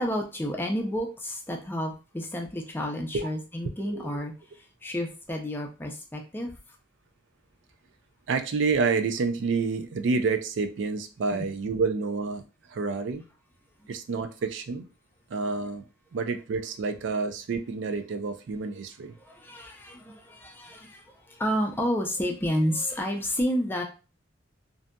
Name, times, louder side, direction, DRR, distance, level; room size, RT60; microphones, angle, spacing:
voice 1, 0.0-6.5 11.3-11.4 19.2-23.8, equal, 10° left, 0.4 m, -30 dB
voice 2, 3.8-4.1 8.3-12.4 12.7-13.3 13.9-14.9 15.3-15.8 16.1-19.2, right 4 dB, 65° right, 0.3 m, -28 dB
2.6 x 2.5 x 2.2 m
head